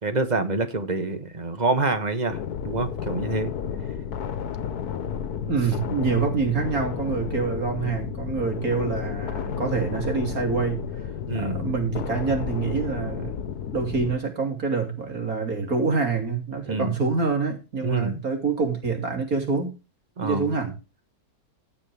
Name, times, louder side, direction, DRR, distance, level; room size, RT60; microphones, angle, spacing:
voice 1, 0.0-3.5 11.3-11.6 16.7-17.0 17.8-18.2 20.2-20.5, right 3 dB, 30° right, 9 dB, 1.4 m, -26 dB
sound 1, 2.3-14.2, left 8 dB, 85° left, 1.5 m, -32 dB
voice 2, 5.5-10.9 11.3-13.4 13.7-19.8 20.2-20.7, right 5 dB, 65° right, 3 dB, 3.5 m, -26 dB
16.5 x 6.9 x 3.5 m, 0.29 s
omnidirectional pair, 1.6 m